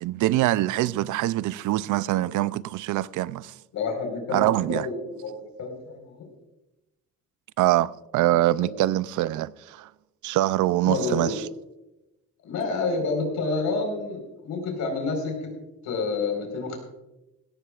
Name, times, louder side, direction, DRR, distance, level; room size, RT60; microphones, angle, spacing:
voice 1, 0.0-3.5 4.3-4.9 7.6-9.9 10.2-11.5, right 15 dB, 80° right, 0.5 m, -24 dB
voice 2, 3.7-6.3 8.6-8.7 10.9-11.4 12.4-15.5 15.8-16.8, left 3 dB, 80° left, 4.4 m, -29 dB
17.0 x 15.0 x 2.4 m
cardioid pair, 90°, 30 cm